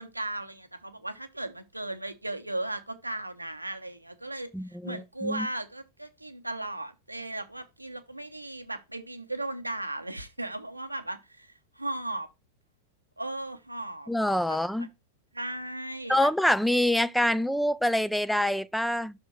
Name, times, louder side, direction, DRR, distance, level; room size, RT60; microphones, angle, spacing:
voice 1, 0.0-12.3 13.2-14.1 14.5-14.9 15.3-16.3, right 1 dB, 85° right, 0.8 m, -36 dB
voice 2, 4.5-5.5 14.1-14.9 16.1-19.1, left 1 dB, ahead, 0.3 m, -26 dB
6.0 x 3.6 x 5.8 m
figure-of-eight pair, 90°, 0 cm